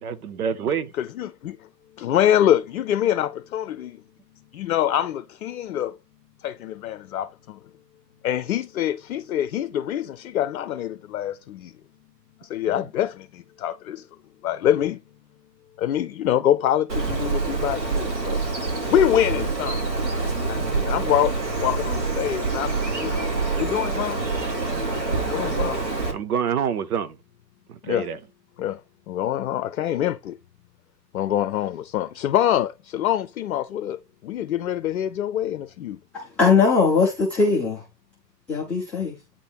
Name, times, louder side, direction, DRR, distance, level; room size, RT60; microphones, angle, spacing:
voice 1, 0.0-0.9 12.7-12.8 26.1-27.2 27.7-28.2, right 7 dB, 60° right, 0.9 m, -27 dB
voice 2, 1.0-1.6 2.0-4.0 4.5-5.9 6.4-7.6 8.2-11.7 12.4-14.0 14.4-15.0 15.8-18.5 18.9-19.8 20.5-21.3 21.6-24.3 25.3-25.9 27.8-28.1 28.6-28.8 29.1-30.3 31.1-36.0, left 11 dB, 60° left, 0.7 m, -25 dB
Bird, 16.9-26.1, right 3 dB, 75° right, 3.8 m, -26 dB
voice 3, 36.1-37.8 38.5-39.1, left 4 dB, 5° left, 0.4 m, -20 dB
9.0 x 3.3 x 4.2 m
figure-of-eight pair, 110°, 50 cm